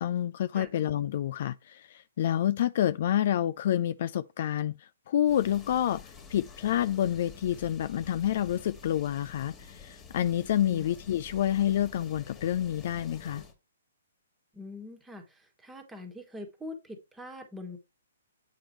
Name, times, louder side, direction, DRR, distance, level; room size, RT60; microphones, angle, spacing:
voice 1, 0.0-13.4, left 11 dB, 50° left, 0.3 m, -28 dB
sound 1, 5.2-13.5, left 5 dB, 20° left, 1.8 m, -49 dB
voice 2, 14.5-17.8, left 2 dB, 10° right, 1.5 m, -43 dB
8.4 x 5.0 x 3.1 m
figure-of-eight pair, 125°, 0 cm